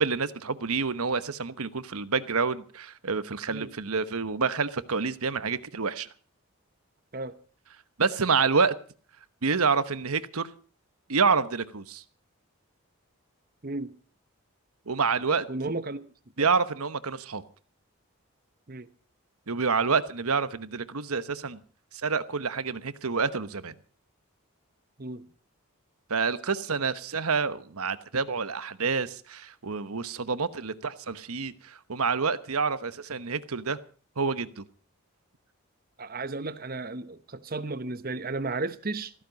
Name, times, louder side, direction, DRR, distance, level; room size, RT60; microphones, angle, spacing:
voice 1, 0.0-6.1 8.0-8.7 9.4-10.5 11.1-12.0 14.9-15.5 16.4-17.4 19.5-21.6 21.9-23.7 26.1-33.8 34.2-34.6, right 5 dB, 80° right, 1.1 m, -28 dB
voice 2, 15.5-16.1 16.4-16.5 18.7-18.9 25.0-25.2 36.0-39.1, right 3 dB, 40° right, 0.9 m, -34 dB
15.5 x 14.0 x 5.3 m
head